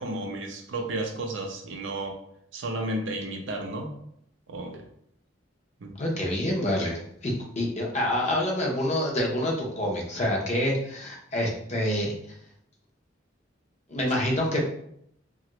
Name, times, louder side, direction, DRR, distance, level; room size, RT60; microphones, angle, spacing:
voice 1, 0.0-2.2 2.5-3.9 4.5-4.9 5.8-5.9, right 1 dB, 80° right, 3 dB, 0.5 m, -32 dB
voice 2, 6.0-12.1 13.9-14.7, left 1 dB, 35° left, -1 dB, 0.7 m, -27 dB
2.9 x 2.4 x 3.0 m, 0.71 s
head